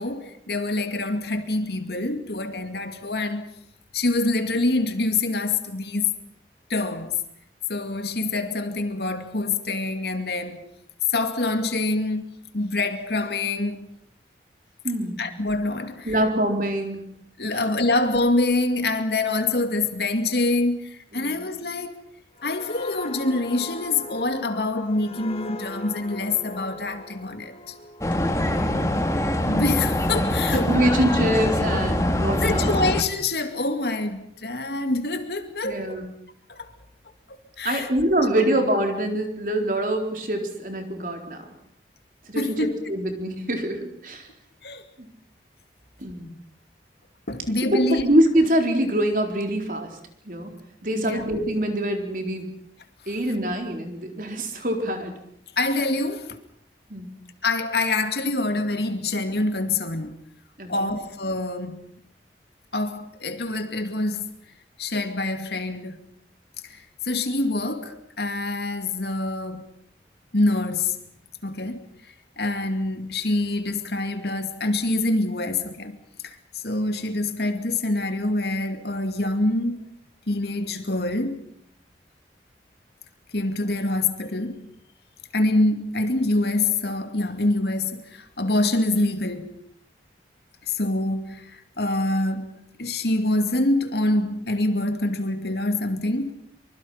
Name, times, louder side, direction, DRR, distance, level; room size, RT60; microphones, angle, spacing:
voice 1, 0.0-3.5 3.9-6.1 6.7-7.2 7.7-10.7 11.1-13.9 15.2-16.2 17.4-22.0 22.4-27.7 29.4-31.2 32.4-36.0 36.5-36.7 37.3-37.9 42.3-42.7 44.6-44.8 47.3-48.1 50.9-51.2 55.6-56.4 57.4-60.2 60.7-61.9 62.7-64.3 64.8-66.0 66.6-69.7 70.3-71.0 71.4-71.8 72.4-79.8 80.3-81.4 83.3-84.7 85.3-89.6 90.6-96.3, left 2 dB, 70° left, 2.4 m, -26 dB
voice 2, 14.8-15.2 16.1-17.0 17.5-17.6 21.2-21.4 28.5-29.0 30.5-32.9 35.6-36.1 37.6-41.5 42.3-44.3 45.0-45.1 46.0-46.3 47.6-50.0 50.3-50.5 50.8-52.5 53.1-55.2 56.9-57.1 60.6-60.9, right 1 dB, 50° right, 4.1 m, -25 dB
sound 1, 22.4-29.8 30.2-30.5, left 2 dB, 35° left, 1.9 m, -40 dB
sound 2, 28.0-33.0, left 1 dB, 15° left, 1.8 m, -23 dB
25.5 x 24.5 x 5.9 m
head